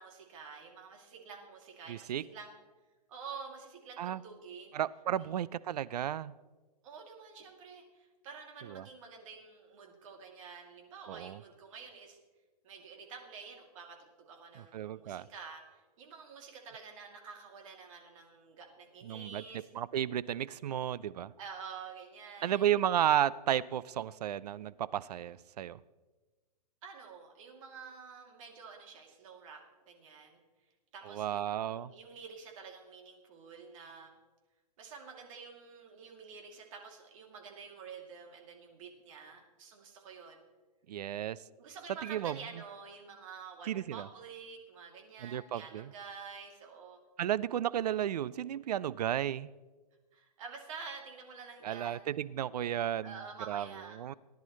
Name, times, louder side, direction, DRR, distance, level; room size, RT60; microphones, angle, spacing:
voice 1, 0.0-2.5 3.1-4.7 5.2-5.3 6.8-12.2 12.6-19.7 21.4-22.8 26.8-29.6 29.9-30.4 30.9-34.1 34.8-40.4 41.6-47.0 50.1-52.1 53.0-54.0, right 5 dB, 50° right, 1 dB, 2.8 m, -49 dB
voice 2, 1.9-2.2 4.0-4.2 4.7-6.3 8.6-8.9 11.1-11.4 14.7-15.3 19.0-19.4 19.7-21.3 22.4-25.8 31.1-31.9 40.9-41.4 42.0-42.4 43.7-44.1 45.2-45.9 47.2-49.5 51.6-53.2 53.5-53.7 54.0-54.1, right 11 dB, 70° right, 19 dB, 0.4 m, -33 dB
19.0 x 10.5 x 3.2 m, 1.2 s
hypercardioid pair, 140°, 21 cm